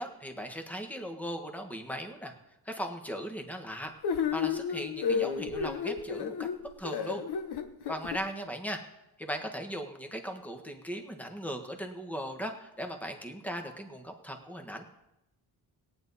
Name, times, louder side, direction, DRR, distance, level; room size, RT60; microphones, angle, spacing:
voice 1, 0.0-2.3 2.6-6.5 6.8-7.2 7.9-8.8 9.2-14.8, equal, 5° left, 4 dB, 1.4 m, -38 dB
sound 1, 4.0-8.2, left 6 dB, 80° left, 1.1 m, -32 dB
18.0 x 9.5 x 4.2 m, 0.89 s
cardioid pair, 110°, 39 cm